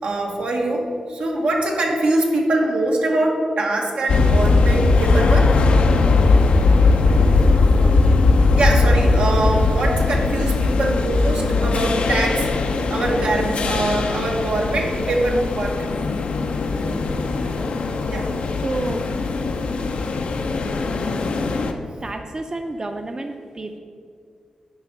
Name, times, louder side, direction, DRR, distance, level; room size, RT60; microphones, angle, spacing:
voice 1, 0.0-5.6 8.5-15.8 18.1-18.3, right 2 dB, 85° right, -1 dB, 1.2 m, -23 dB
sound 1, 4.1-21.7, left 3 dB, 80° left, 0.5 m, -19 dB
voice 2, 7.1-7.4 7.8-8.2 16.8-17.3 17.6-17.7 18.6-19.0 22.0-23.8, right 2 dB, 35° right, 5 dB, 0.5 m, -31 dB
9.6 x 3.5 x 6.0 m, 2.1 s
cardioid pair, 60°, 2 cm